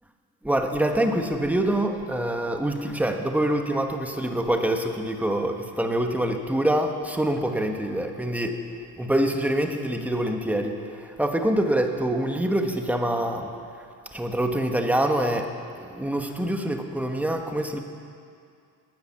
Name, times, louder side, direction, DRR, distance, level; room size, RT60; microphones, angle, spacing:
voice 1, 0.4-8.6 9.0-13.5 14.1-15.5 15.7-17.8, right 1 dB, 5° right, 4 dB, 1.2 m, -25 dB
19.0 x 10.0 x 7.3 m, 2.4 s
cardioid pair, 140°, 39 cm